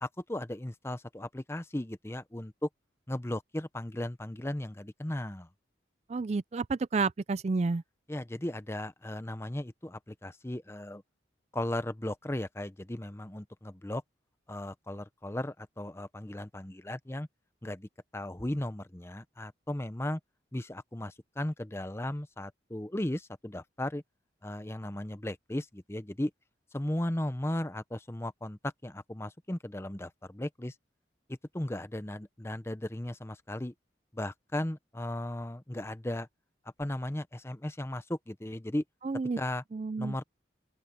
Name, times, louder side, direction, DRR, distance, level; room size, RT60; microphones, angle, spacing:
voice 1, 0.0-2.7 3.1-5.5 8.1-11.0 11.5-14.0 14.5-17.3 17.6-20.2 20.5-24.0 24.4-26.3 26.7-30.7 31.3-33.7 34.1-36.3 36.8-38.8 39.4-39.6 40.0-40.2, left 1 dB, 15° left, 0.7 m, -36 dB
voice 2, 6.1-7.8 39.0-39.4 39.7-40.2, right 4 dB, 35° right, 0.4 m, -30 dB
open air
head